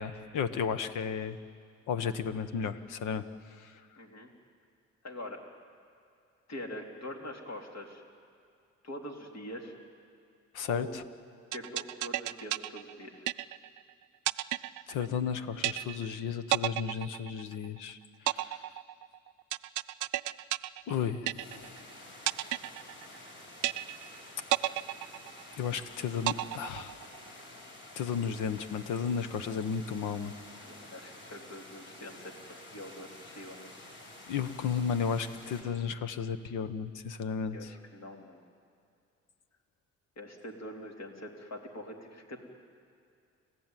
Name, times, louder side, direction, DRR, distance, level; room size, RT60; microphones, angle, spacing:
voice 1, 0.0-1.4 1.9-3.2 3.6-3.7 10.5-11.0 14.9-18.0 18.2-18.7 20.9-21.8 25.6-26.9 28.0-30.3 34.3-37.7, left 7 dB, 90° left, 11 dB, 1.2 m, -33 dB
voice 2, 4.0-4.3 5.0-5.4 6.5-8.0 8.8-9.7 10.7-11.0 11.5-13.3 30.6-32.3 32.7-33.7 37.5-38.4 40.2-42.4, left 1 dB, 60° left, 1 dB, 3.7 m, -43 dB
sound 1, 11.5-13.8 14.3-15.3 15.6-16.2 16.5-17.8 18.3-21.8 22.3-23.3 23.6-24.2 24.5-25.8 26.3-27.3, right 16 dB, 80° right, 0.6 m, -32 dB
sound 2, 21.4-35.6, left 1 dB, 40° left, 6.3 m, -50 dB
29.5 x 14.5 x 9.1 m, 2.4 s
cardioid pair, 90°, 30 cm